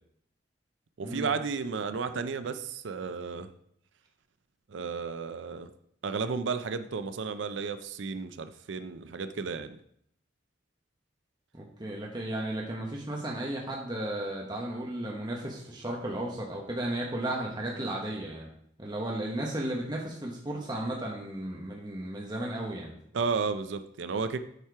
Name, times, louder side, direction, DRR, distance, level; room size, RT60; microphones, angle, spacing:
voice 1, 1.0-3.5 4.7-5.7 6.0-9.8 23.1-24.4, right 5 dB, 70° right, 11 dB, 0.5 m, -33 dB
voice 2, 11.5-18.5 18.8-22.9, right 1 dB, 20° right, -2 dB, 1.0 m, -34 dB
8.1 x 4.4 x 4.7 m, 0.70 s
head